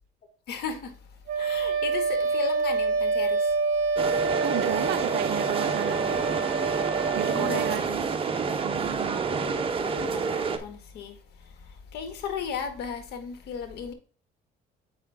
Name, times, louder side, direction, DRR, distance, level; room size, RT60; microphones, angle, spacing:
voice 1, 0.5-1.1 1.4-3.6 6.1-8.0 9.8-13.9, left 6 dB, 75° left, 1.7 m, -36 dB
Wind instrument woodwind instrument, 1.3-7.8, right 4 dB, 50° right, 1.4 m, -27 dB
sound 1, 4.0-10.6, right 5 dB, 30° right, 1.0 m, -28 dB
voice 2, 4.4-6.0 7.1-8.1 8.6-9.2, right 15 dB, 80° right, 0.6 m, -33 dB
7.3 x 5.4 x 3.6 m
cardioid pair, 110°, 17 cm